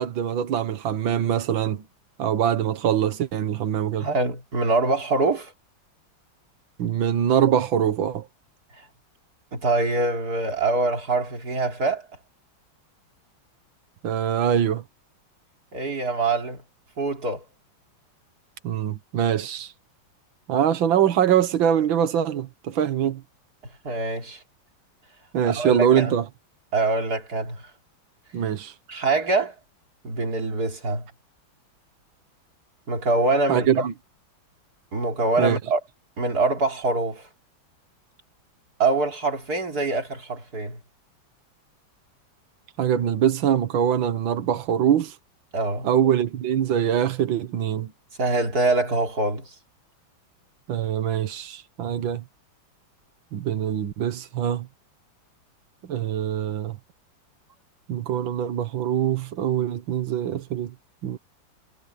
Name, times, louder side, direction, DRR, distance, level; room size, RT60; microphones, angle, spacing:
voice 1, 0.0-1.8 2.2-4.1 6.8-8.3 14.0-14.8 18.6-19.7 20.5-23.2 25.3-26.3 28.3-28.7 33.5-33.9 35.4-35.6 42.8-45.2 45.8-47.9 50.7-52.2 53.3-54.7 55.9-56.8 57.9-60.7 61.0-61.2, right 9 dB, 75° right, 2.0 m, -23 dB
voice 2, 4.0-5.5 9.5-12.1 15.7-16.6 17.0-17.4 23.8-24.4 25.5-26.1 26.7-27.6 28.9-29.5 30.0-31.1 32.9-33.9 34.9-35.8 36.2-37.2 38.8-40.8 45.5-45.9 48.2-49.5, right 3 dB, 50° right, 4.1 m, -24 dB
omnidirectional pair, 2.1 m